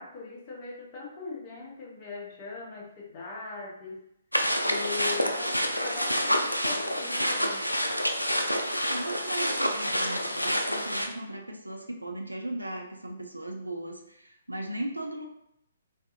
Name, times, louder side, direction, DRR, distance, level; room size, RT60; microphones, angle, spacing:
voice 1, 0.0-4.1 4.6-7.7, left 4 dB, 30° left, -3 dB, 0.7 m, -40 dB
sound 1, 4.3-11.1, equal, 90° left, 0.3 m, -28 dB
voice 2, 8.9-15.3, right 1 dB, 85° right, 3 dB, 0.4 m, -37 dB
2.5 x 2.4 x 2.3 m, 0.77 s
figure-of-eight pair, 130°, 0 cm